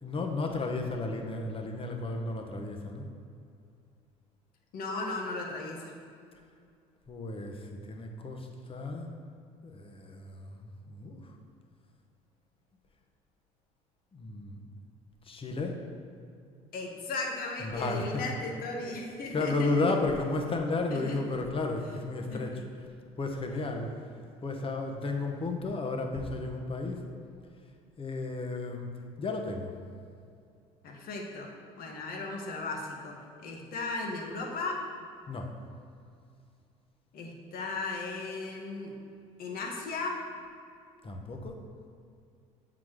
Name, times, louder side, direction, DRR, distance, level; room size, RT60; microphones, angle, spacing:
voice 1, 0.0-3.1 7.1-9.1 9.6-11.4 14.1-14.7 15.2-15.8 17.6-18.2 18.6-18.7 19.3-22.6 23.2-23.9 24.4-27.1 28.0-29.7 35.3-35.5 41.0-41.6, left 3 dB, 30° left, 3 dB, 1.0 m, -33 dB
voice 2, 4.7-5.9 16.7-19.8 20.9-21.4 22.3-22.6 30.8-31.5 31.8-33.2 33.4-34.8 37.1-38.9 39.4-40.2, left 3 dB, 55° left, 0 dB, 1.2 m, -36 dB
7.3 x 3.9 x 4.8 m, 2.3 s
hypercardioid pair, 65°, 18 cm